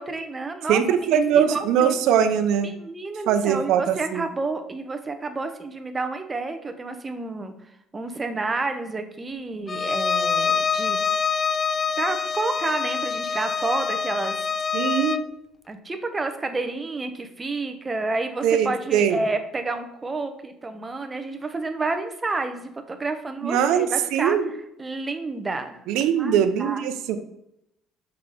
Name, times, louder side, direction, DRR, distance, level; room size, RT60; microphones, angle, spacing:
voice 1, 0.0-0.8 1.1-1.9 2.6-7.5 7.9-11.0 12.0-14.4 15.7-24.4 24.8-25.8 26.2-26.8, right 3 dB, 15° right, 7 dB, 0.8 m, -30 dB
voice 2, 0.7-2.7 3.3-4.3 14.7-15.2 18.4-19.2 23.4-24.5 25.9-27.2, right 8 dB, 80° right, 8 dB, 0.7 m, -21 dB
Bowed string instrument, 9.7-15.3, left 6 dB, 25° left, 0.3 m, -25 dB
6.0 x 5.8 x 5.1 m, 0.81 s
cardioid pair, 160°, 0 cm